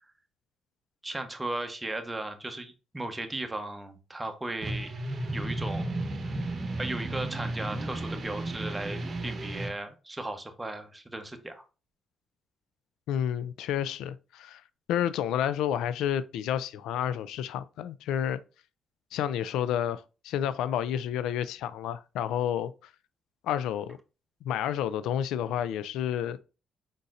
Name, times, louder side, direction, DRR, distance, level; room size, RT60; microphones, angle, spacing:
voice 1, 1.0-4.9 5.3-6.0 6.8-11.6, right 2 dB, 15° right, 1.0 m, -36 dB
sound 1, 4.6-9.7, right 2 dB, 40° right, 1.0 m, -33 dB
voice 2, 13.1-14.6 14.9-18.4 19.1-22.7 23.4-24.0 24.4-26.4, left 10 dB, 90° left, 0.3 m, -30 dB
5.2 x 4.0 x 2.5 m
cardioid pair, 90°, 0 cm